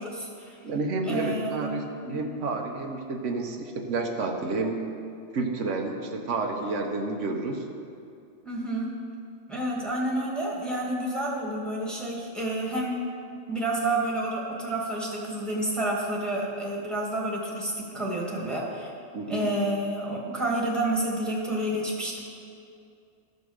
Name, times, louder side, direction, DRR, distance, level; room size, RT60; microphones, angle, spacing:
voice 1, 0.0-0.6 1.0-2.3 8.4-8.9 9.5-13.0 13.5-18.9 19.3-22.2, right 1 dB, ahead, -3 dB, 1.8 m, -29 dB
voice 2, 0.6-4.8 5.3-7.7 19.1-19.5, right 3 dB, 80° right, 2 dB, 1.2 m, -30 dB
13.0 x 5.3 x 6.4 m, 2.5 s
omnidirectional pair, 1.3 m